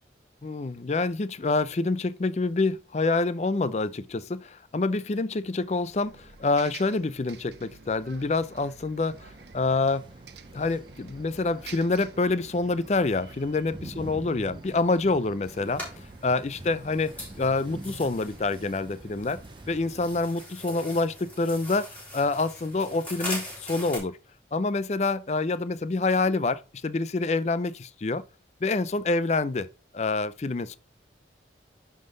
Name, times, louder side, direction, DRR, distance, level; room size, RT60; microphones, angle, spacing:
voice 1, 0.4-10.0 10.5-15.8 16.2-21.9 22.1-24.2 24.5-28.2 28.6-29.7 29.9-30.8, left 3 dB, 35° left, 0.4 m, -27 dB
Bus, 5.7-21.5, right 5 dB, 65° right, 0.7 m, -52 dB
sound 1, 9.1-20.2, right 1 dB, 25° right, 0.5 m, -46 dB
sound 2, 15.4-24.0, left 1 dB, 10° left, 4.0 m, -41 dB
10.5 x 3.8 x 3.9 m
head